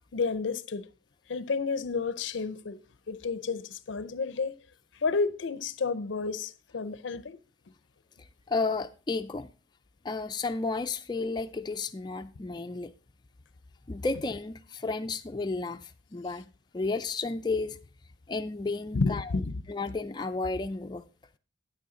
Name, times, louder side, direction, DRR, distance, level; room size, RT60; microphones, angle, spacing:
voice 1, 0.1-0.9 1.3-2.8 3.1-4.5 5.0-7.4 18.9-19.5, left 4 dB, 80° left, 0.5 m, -31 dB
voice 2, 8.5-9.5 10.0-12.9 13.9-16.5 16.7-17.8 18.3-19.3 19.7-21.1, left 3 dB, 25° left, 0.4 m, -32 dB
9.2 x 8.6 x 3.7 m
head